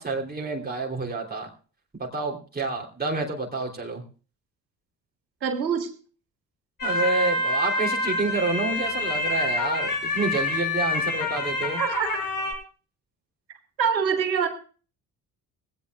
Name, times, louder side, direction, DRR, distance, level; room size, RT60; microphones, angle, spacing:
voice 1, 0.0-1.5 1.9-4.0 6.8-11.8, right 3 dB, 20° right, 1 dB, 3.3 m, -28 dB
voice 2, 5.4-5.9 11.8-12.2 13.8-14.5, right 7 dB, 85° right, 8 dB, 1.5 m, -24 dB
sound 1, 6.8-12.5, left 2 dB, 40° left, 7.3 m, -27 dB
19.5 x 16.0 x 2.4 m, 0.38 s
figure-of-eight pair, 45°, 50 cm